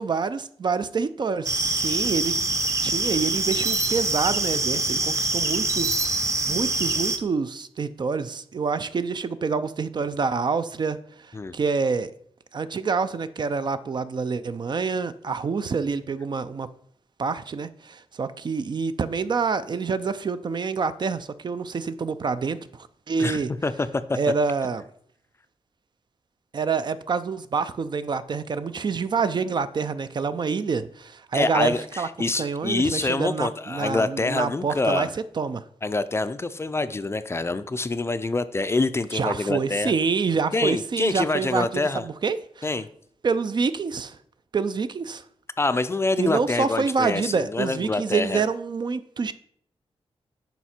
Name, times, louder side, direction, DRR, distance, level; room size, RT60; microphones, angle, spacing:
voice 1, 0.0-2.3 2.8-11.0 11.5-12.1 12.5-16.7 17.2-22.6 23.1-23.5 24.2-24.8 26.5-32.1 32.4-35.1 35.4-35.6 39.1-42.7 43.2-44.2 44.5-45.2 46.2-49.3, right 5 dB, 45° right, 0.4 m, -27 dB
sound 1, 1.4-7.2, right 2 dB, 30° right, 0.8 m, -25 dB
voice 2, 23.2-24.2 31.3-35.1 35.8-39.9 40.5-42.1 42.6-42.9 45.6-48.4, left 3 dB, 25° left, 0.4 m, -26 dB
9.1 x 5.7 x 4.3 m
wide cardioid pair, 140°, 11 cm